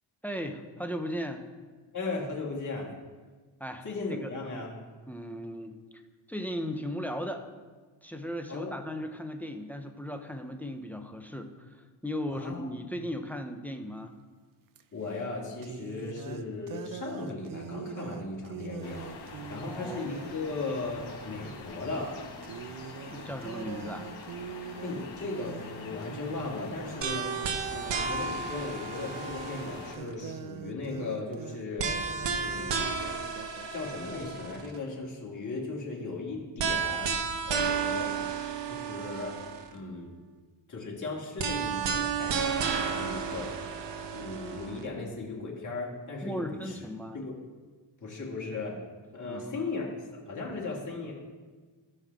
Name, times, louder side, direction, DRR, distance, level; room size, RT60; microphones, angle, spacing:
voice 1, 0.2-1.5 3.6-4.3 5.1-5.8 6.3-7.5 8.0-14.1 19.5-20.1 23.1-24.1 46.2-47.2 49.2-49.7, equal, 5° left, 6 dB, 0.6 m, -37 dB
voice 2, 1.9-2.9 3.8-4.7 8.5-8.8 12.3-12.7 14.9-22.1 24.8-27.3 27.7-32.0 32.4-32.9 33.7-37.1 37.4-38.1 38.6-39.4 39.7-40.1 40.7-43.5 44.1-46.8 47.1-47.4 48.0-48.8 49.1-51.1, left 3 dB, 35° left, -4 dB, 2.5 m, -37 dB
sound 1, 14.7-14.8 15.6-21.6 22.0-22.2 22.4-33.7, right 8 dB, 45° right, 0.5 m, -44 dB
sound 2, 18.8-30.0, left 4 dB, 70° left, 2.1 m, -45 dB
sound 3, 27.0-30.1 31.8-34.8 36.6-39.7 41.4-44.8, right 6 dB, 60° right, 1.0 m, -32 dB
14.5 x 5.5 x 3.6 m, 1.4 s
cardioid pair, 95°, 48 cm